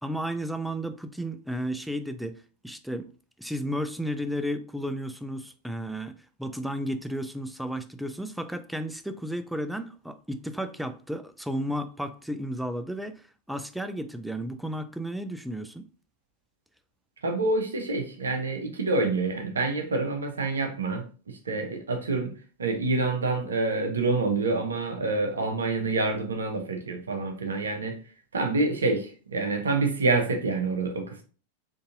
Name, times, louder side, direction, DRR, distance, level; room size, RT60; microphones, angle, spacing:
voice 1, 0.0-3.1 3.4-15.9, equal, ahead, 0.3 m, -33 dB
voice 2, 17.2-22.3 22.6-28.0 28.3-31.2, right 3 dB, 70° right, 0.7 m, -27 dB
3.8 x 2.6 x 2.5 m
figure-of-eight pair, 90°, 0 cm